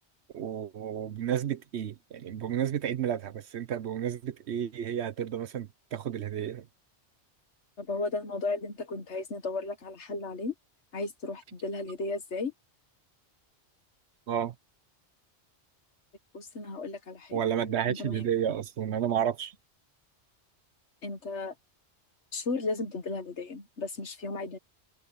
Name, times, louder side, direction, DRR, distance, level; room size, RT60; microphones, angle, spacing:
voice 1, 0.3-6.7 14.3-14.5 17.3-19.5, right 9 dB, 75° right, 1.1 m, -31 dB
voice 2, 7.8-10.5 10.9-12.5 16.3-18.3 21.0-21.5 22.3-24.6, left 3 dB, 85° left, 1.9 m, -35 dB
omnidirectional pair, 1.1 m